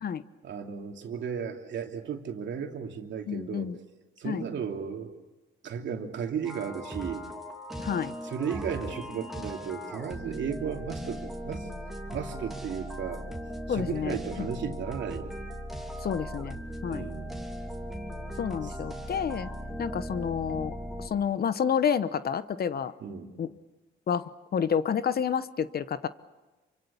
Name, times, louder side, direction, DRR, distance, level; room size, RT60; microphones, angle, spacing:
voice 1, 0.4-3.7 4.2-5.1 5.6-7.3 8.2-11.7 12.1-15.3 16.9-17.4 18.6-18.7 23.0-23.3, right 7 dB, 65° right, 3 dB, 2.9 m, -35 dB
voice 2, 3.3-3.8 4.2-4.4 7.8-8.1 13.7-14.5 16.0-16.6 16.8-17.1 18.4-19.5 19.8-22.9 23.4-23.5 24.1-26.1, left 7 dB, 50° left, 14 dB, 1.1 m, -29 dB
sound 1, 6.4-21.1, equal, ahead, 3.0 m, -38 dB
28.0 x 25.0 x 7.1 m, 1.2 s
cardioid pair, 90°, 20 cm